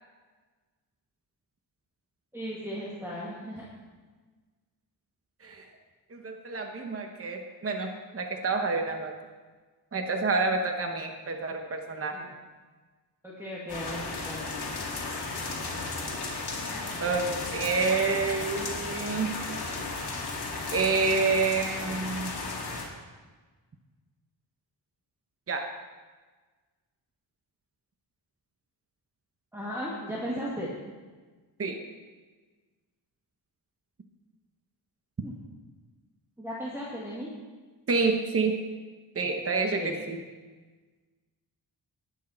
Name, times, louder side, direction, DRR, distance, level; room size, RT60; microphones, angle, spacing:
voice 1, 2.3-3.7 12.1-12.2 13.2-14.5 29.5-30.7 35.2-35.4 36.4-37.3 39.6-40.0, equal, 5° right, -6 dB, 2.0 m, -36 dB
voice 2, 6.1-9.1 9.9-12.3 17.0-19.4 20.7-22.3 25.5-25.7 31.6-31.8 37.9-38.6 39.1-40.2, right 4 dB, 30° right, 4 dB, 1.0 m, -28 dB
sound 1, 13.7-22.8, left 3 dB, 60° left, 2.6 m, -34 dB
19.5 x 8.4 x 4.3 m, 1.4 s
wide cardioid pair, 165°, 43 cm